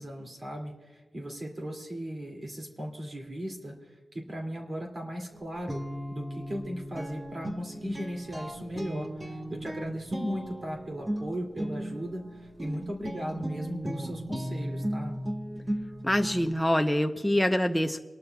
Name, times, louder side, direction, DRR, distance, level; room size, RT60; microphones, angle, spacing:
voice 1, 0.0-15.1, equal, 40° right, 1 dB, 2.4 m, -37 dB
Guitar, 5.3-16.6, right 1 dB, 20° right, 1.2 m, -36 dB
voice 2, 16.0-18.0, left 1 dB, 5° left, 5 dB, 0.7 m, -25 dB
27.5 x 12.0 x 2.3 m, 1.3 s
cardioid pair, 65°, 0 cm